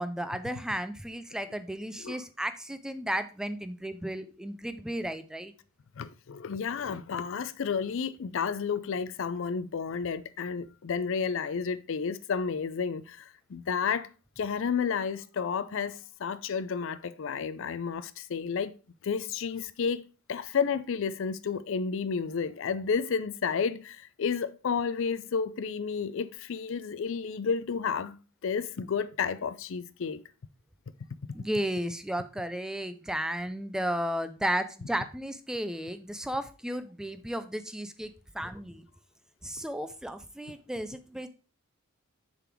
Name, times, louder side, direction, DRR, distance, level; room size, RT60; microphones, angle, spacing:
voice 1, 0.0-5.5 31.3-38.8 39.4-41.3, right 1 dB, 5° right, 0.4 m, -34 dB
voice 2, 6.0-14.1 14.4-18.7 19.0-20.0 20.3-28.2 28.4-30.2, left 6 dB, 60° left, 0.4 m, -31 dB
6.8 x 4.0 x 4.5 m
head